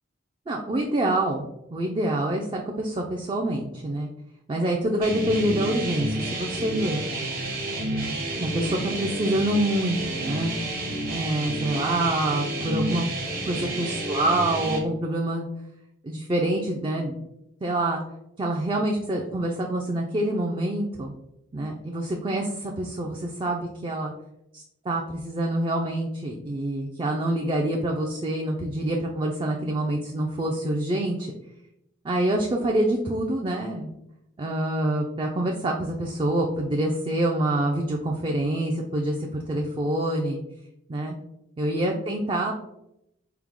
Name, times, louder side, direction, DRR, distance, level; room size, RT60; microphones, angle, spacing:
voice 1, 0.5-4.1 4.5-7.1 8.4-10.5 11.1-13.1 13.5-15.5 16.0-17.2 17.6-18.0 18.4-21.1 21.5-24.1 24.5-31.3 32.0-33.9 34.4-40.4 40.9-41.2 41.6-42.5, right 1 dB, 25° right, 0 dB, 0.3 m, -26 dB
sound 1, 5.0-14.8, right 1 dB, 45° right, 0.9 m, -30 dB
4.5 x 2.1 x 3.6 m, 0.82 s
head